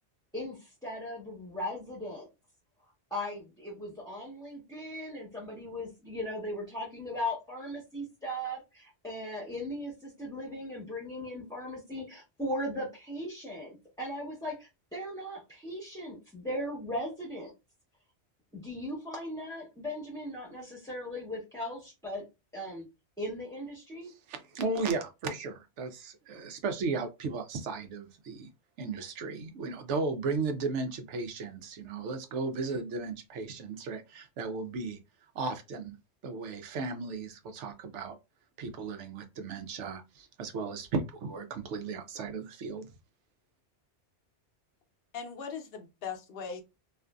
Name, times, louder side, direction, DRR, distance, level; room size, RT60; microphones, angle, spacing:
voice 1, 0.3-2.3 3.1-17.5 18.5-22.2 22.5-22.8 23.2-24.1, left 1 dB, 5° left, 0.8 m, -38 dB
voice 2, 24.3-28.5 28.8-35.0 35.3-35.9 36.2-38.2 38.6-42.9, right 4 dB, 85° right, 0.9 m, -35 dB
voice 3, 45.1-46.6, left 6 dB, 60° left, 0.8 m, -39 dB
2.5 x 2.5 x 2.2 m
omnidirectional pair, 1.2 m